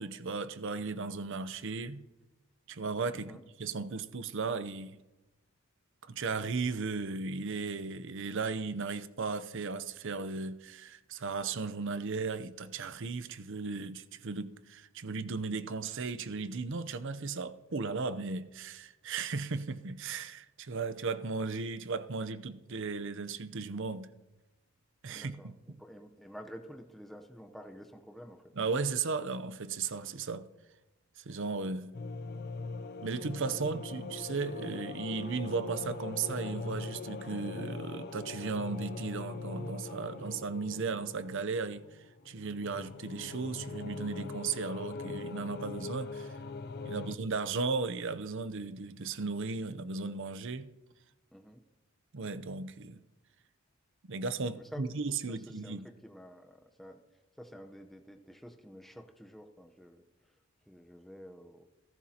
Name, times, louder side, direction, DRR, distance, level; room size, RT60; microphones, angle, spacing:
voice 1, 0.0-2.1 2.7-5.0 6.1-24.1 25.0-25.8 28.6-30.5 31.2-32.0 33.0-41.9 42.3-46.3 46.8-50.7 52.1-53.0 54.1-55.9, right 4 dB, 60° right, 0.7 m, -36 dB
voice 2, 25.1-28.4 46.8-47.1 51.3-51.6 54.5-54.8 55.3-57.0 57.4-60.0 60.7-61.7, equal, ahead, 0.8 m, -50 dB
sound 1, 31.9-47.2, left 3 dB, 50° left, 0.5 m, -41 dB
29.0 x 11.5 x 2.9 m
head